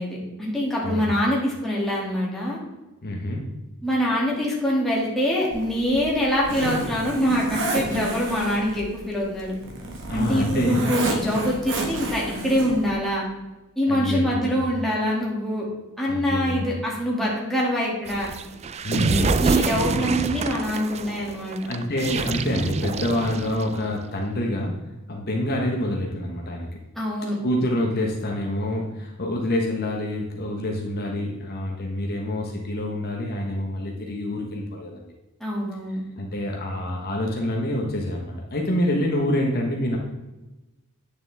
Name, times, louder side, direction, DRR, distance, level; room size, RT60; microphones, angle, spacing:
voice 1, 0.0-2.6 3.8-9.5 10.1-13.2 13.8-15.6 16.0-18.3 19.4-21.6 27.0-27.4 35.4-36.0, equal, ahead, -5 dB, 2.1 m, -24 dB
voice 2, 3.0-3.4 10.1-10.9 13.9-14.6 16.1-16.7 18.8-19.4 21.7-24.8 25.1-26.7 27.4-35.1 36.2-40.0, left 1 dB, 45° left, 0 dB, 1.0 m, -27 dB
Zipper (clothing), 5.5-12.9, right 2 dB, 60° right, 1.5 m, -30 dB
sound 1, 18.1-23.9, right 4 dB, 30° right, 0.3 m, -26 dB
9.1 x 6.8 x 3.4 m, 1.0 s
head